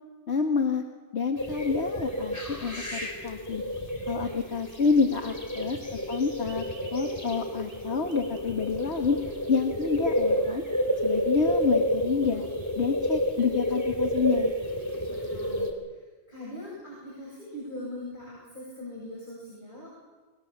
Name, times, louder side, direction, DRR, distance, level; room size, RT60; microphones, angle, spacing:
voice 1, 0.3-0.8 1.1-3.6 4.1-6.6 6.9-9.2 9.5-10.6 11.0-12.5 12.8-14.5, left 5 dB, 70° left, 2 dB, 1.9 m, -28 dB
sound 1, 1.4-15.7, equal, 15° left, 4.1 m, -30 dB
voice 2, 15.1-15.7 16.3-20.0, left 1 dB, 45° left, -5 dB, 8.2 m, -41 dB
30.0 x 23.5 x 7.3 m, 1.3 s
omnidirectional pair, 1.2 m